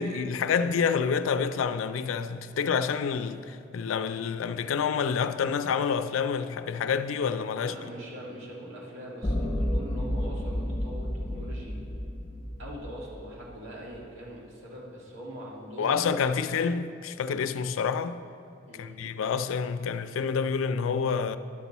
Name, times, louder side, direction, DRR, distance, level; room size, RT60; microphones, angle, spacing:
voice 1, 0.0-7.7 15.8-18.2 18.8-21.4, left 6 dB, 85° left, 0.4 m, -28 dB
voice 2, 7.6-11.8 12.6-16.1 18.7-19.0, equal, 75° right, 1.9 m, -42 dB
sound 1, 9.2-13.5, equal, 20° left, 0.7 m, -31 dB
11.5 x 6.0 x 4.1 m
head